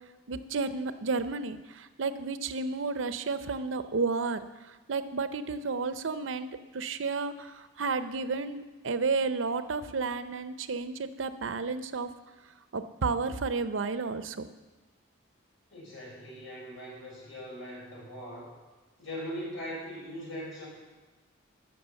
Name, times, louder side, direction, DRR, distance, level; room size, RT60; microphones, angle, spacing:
voice 1, 0.3-12.1 12.7-14.5, right 4 dB, 75° right, 11 dB, 0.6 m, -32 dB
voice 2, 15.7-18.5 19.0-20.7, equal, 80° left, -4 dB, 4.9 m, -40 dB
13.0 x 6.1 x 7.0 m, 1.2 s
head